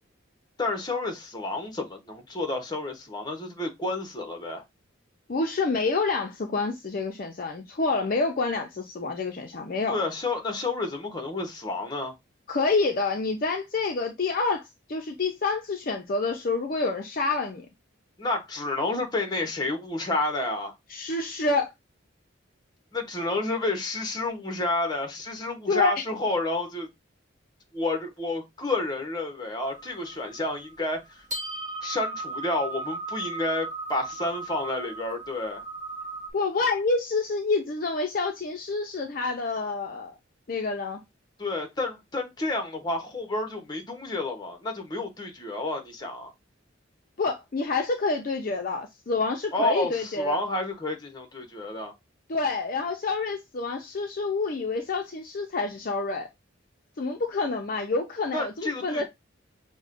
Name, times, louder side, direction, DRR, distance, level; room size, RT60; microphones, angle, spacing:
voice 1, 0.6-4.6 9.9-12.1 18.2-20.7 22.9-26.9 27.7-31.2 31.8-35.6 41.4-46.3 49.5-51.9 58.3-59.0, left 2 dB, 20° left, 0.9 m, -30 dB
voice 2, 5.3-10.0 12.5-17.7 20.9-21.7 25.7-25.9 36.3-40.1 40.5-41.0 47.2-50.4 52.3-56.3 57.0-59.0, left 3 dB, 45° left, 0.5 m, -28 dB
sound 1, 29.6-36.3, right 2 dB, 35° right, 0.9 m, -37 dB
6.1 x 2.1 x 2.5 m
head